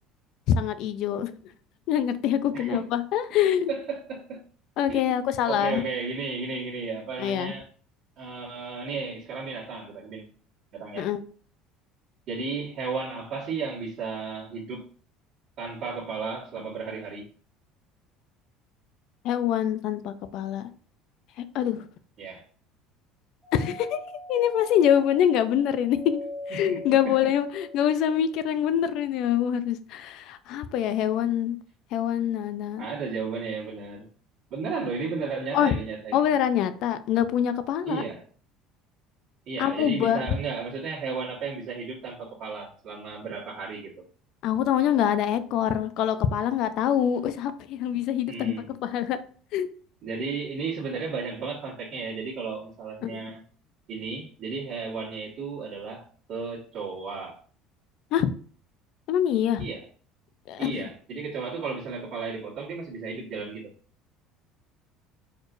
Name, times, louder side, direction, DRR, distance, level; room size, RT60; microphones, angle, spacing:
voice 1, 0.5-1.3 1.9-3.7 4.8-5.8 7.2-7.5 11.0-11.2 19.2-20.6 21.5-21.8 23.5-24.0 24.3-26.2 26.5-31.6 31.9-32.9 35.5-35.7 36.1-38.0 39.6-40.3 44.4-48.5 48.8-49.2 49.5-49.7 53.0-53.2 58.1-58.3 59.1-59.7 60.5-60.9, left 10 dB, 60° left, 0.5 m, -25 dB
voice 2, 2.5-2.9 3.7-4.4 4.9-5.2 5.5-7.7 8.2-10.2 10.7-11.1 12.3-14.9 15.6-17.3 22.2-22.4 26.5-26.8 27.0-27.3 32.8-34.1 34.5-36.3 37.8-38.2 39.5-44.0 48.2-48.7 50.0-53.4 53.9-57.4 59.6-59.9 60.6-63.7, right 4 dB, 55° right, 1.6 m, -34 dB
Doorbell, 23.4-28.3, left 1 dB, 5° right, 1.5 m, -42 dB
4.8 x 4.3 x 2.5 m
cardioid pair, 145°, 0 cm